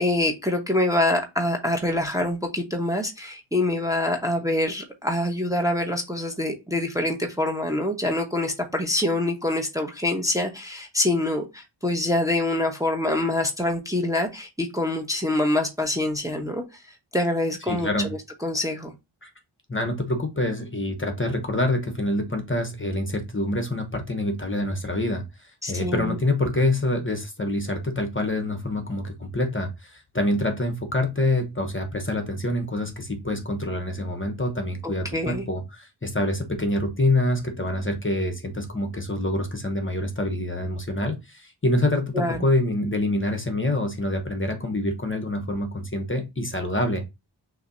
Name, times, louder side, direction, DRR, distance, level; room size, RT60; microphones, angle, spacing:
voice 1, 0.0-16.6 17.1-18.9 25.6-26.2 34.8-35.4 42.1-42.4, left 1 dB, 5° right, 0.9 m, -25 dB
voice 2, 17.7-18.1 19.2-19.3 19.7-47.1, left 1 dB, 25° left, 1.0 m, -26 dB
6.3 x 2.8 x 2.6 m
wide cardioid pair, 60°, 48 cm